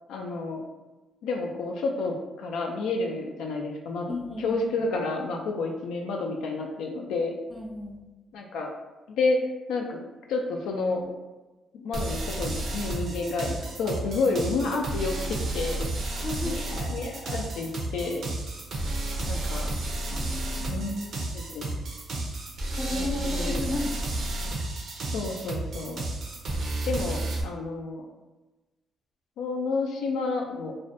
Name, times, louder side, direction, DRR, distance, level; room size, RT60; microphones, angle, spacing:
voice 1, 0.1-0.6 1.2-7.3 8.3-8.7 9.1-9.4 9.7-10.0 10.3-11.1 11.7-15.9 16.4-18.2 19.3-19.7 20.7-21.7 22.9-23.6 25.1-26.0 26.9-28.1 29.4-30.7, left 3 dB, 85° left, 1 dB, 0.3 m, -30 dB
voice 2, 4.1-4.6 7.5-8.0 16.1-16.6 18.8-19.2 20.1-20.9 22.8-24.1 24.4-24.5, left 2 dB, 20° left, -1 dB, 0.4 m, -34 dB
sound 1, 11.9-27.4, right 2 dB, 60° right, 0.5 m, -32 dB
2.4 x 2.1 x 2.5 m, 1.1 s
cardioid pair, 90°, 0 cm